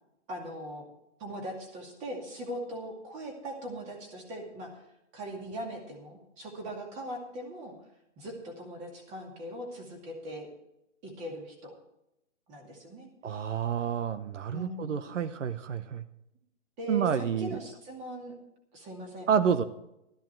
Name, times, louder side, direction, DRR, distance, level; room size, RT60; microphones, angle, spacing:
voice 1, 0.3-0.8 1.2-4.8 5.1-7.7 8.2-10.5 11.0-11.7 12.5-13.1 14.5-15.1 16.8-18.3 18.7-19.7, equal, 20° right, 2 dB, 2.4 m, -40 dB
voice 2, 13.2-16.0 16.9-17.6 19.3-19.6, right 7 dB, 80° right, 12 dB, 1.0 m, -29 dB
13.5 x 11.5 x 4.6 m, 0.84 s
hypercardioid pair, 165°, 37 cm